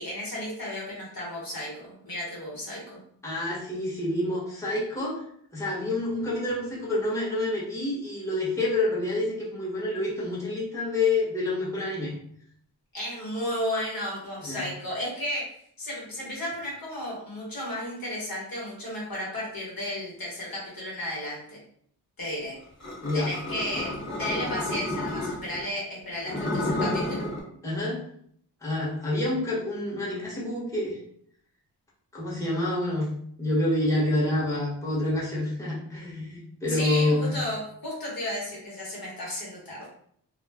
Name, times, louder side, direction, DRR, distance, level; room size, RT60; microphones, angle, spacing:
voice 1, 0.0-3.0 12.9-15.4 15.8-21.6 22.2-22.6 23.1-23.9 24.2-27.3 36.7-39.9, left 1 dB, 55° left, -5 dB, 1.2 m, -33 dB
voice 2, 3.2-5.2 5.5-12.1 14.4-14.7 23.0-23.3 27.6-28.0 28.6-31.0 32.1-33.1 33.4-37.3, left 2 dB, 5° left, -8 dB, 1.0 m, -28 dB
sound 1, 22.8-25.6 26.2-27.4, left 1 dB, 40° left, 0.8 m, -30 dB
2.4 x 2.1 x 3.3 m, 0.65 s
wide cardioid pair, 105°, 42 cm